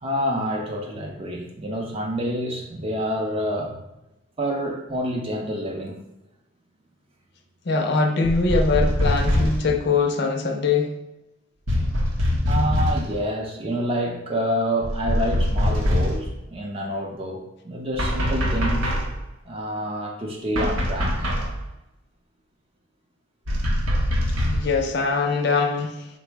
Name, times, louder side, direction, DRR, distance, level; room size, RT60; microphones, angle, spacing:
voice 1, 0.0-3.8 4.4-6.0 12.5-19.0 19.5-21.3, equal, 30° right, 1 dB, 0.5 m, -27 dB
voice 2, 7.7-11.0 24.5-26.1, left 4 dB, 55° left, 3 dB, 0.5 m, -22 dB
sound 1, 8.2-9.7 11.7-13.1 14.8-16.3 18.0-19.2 20.5-21.6 23.5-24.8, equal, 80° right, 0.7 m, -23 dB
4.1 x 2.0 x 4.5 m, 0.90 s
head